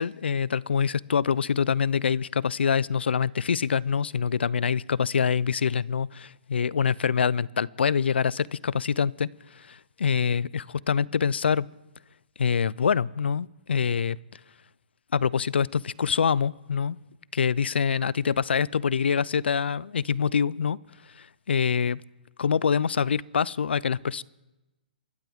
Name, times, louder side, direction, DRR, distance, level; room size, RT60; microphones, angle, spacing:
voice 1, 0.0-11.7 12.4-14.2 15.1-17.0 17.3-20.8 21.2-22.0 22.4-24.2, left 6 dB, 80° left, 24 dB, 0.4 m, -25 dB
24.5 x 14.0 x 3.5 m, 1.0 s
hypercardioid pair, 140°, 6 cm